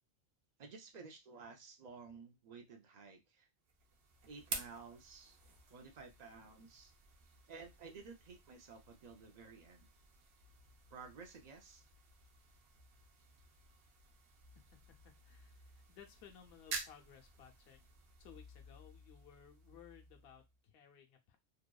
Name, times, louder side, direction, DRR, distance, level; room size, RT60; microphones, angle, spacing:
voice 1, 0.6-3.5 4.2-5.4 5.7-6.9 7.5-9.9 10.9-11.8, right 4 dB, 50° right, 4 dB, 0.6 m, -54 dB
sound 1, 3.6-20.6, right 4 dB, 75° right, 0.9 m, -52 dB
voice 2, 14.5-17.8 18.2-21.4, left 8 dB, 70° left, 3 dB, 0.8 m, -60 dB
2.8 x 2.2 x 2.2 m, 0.20 s
omnidirectional pair, 1.1 m